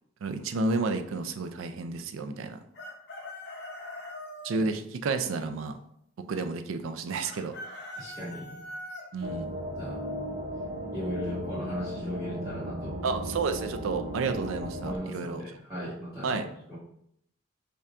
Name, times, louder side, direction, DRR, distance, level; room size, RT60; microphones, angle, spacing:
voice 1, 0.2-2.6 4.4-5.8 6.3-7.6 9.1-9.5 13.0-15.4 15.8-16.0 16.2-16.5, right 3 dB, 70° right, 8 dB, 0.4 m, -31 dB
Chicken rooster, 2.7-4.6 7.3-9.0, left 1 dB, 55° left, 0.8 m, -41 dB
voice 2, 7.9-8.6 9.8-10.0 10.9-13.0 14.8-16.4 16.7-16.8, equal, 15° right, -12 dB, 1.3 m, -37 dB
sound 1, 9.2-15.0, equal, 45° right, 0.7 m, -36 dB
5.3 x 2.3 x 2.5 m, 0.73 s
head